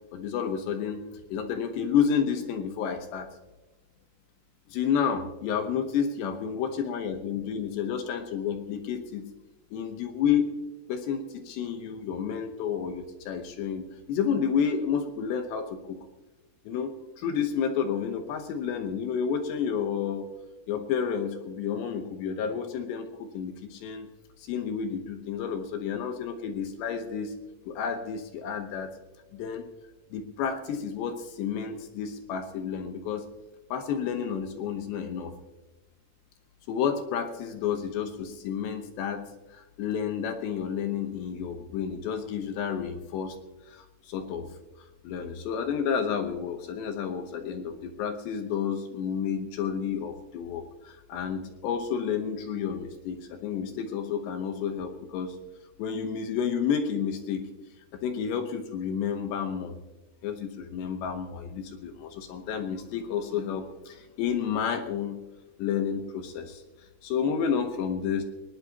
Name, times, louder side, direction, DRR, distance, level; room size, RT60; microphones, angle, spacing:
voice 1, 0.1-3.3 4.7-9.3 9.7-10.5 10.9-16.0 16.7-16.9 17.2-20.4 20.7-24.1 24.4-27.3 27.7-29.0 29.3-29.6 30.1-33.3 33.7-35.3 36.7-43.4 43.7-44.6 45.0-55.4 55.8-57.5 58.0-59.7 60.2-65.2 65.6-68.2, left 7 dB, 70° left, 6 dB, 2.9 m, -30 dB
20.0 x 19.0 x 2.9 m, 1.1 s
omnidirectional pair, 5.7 m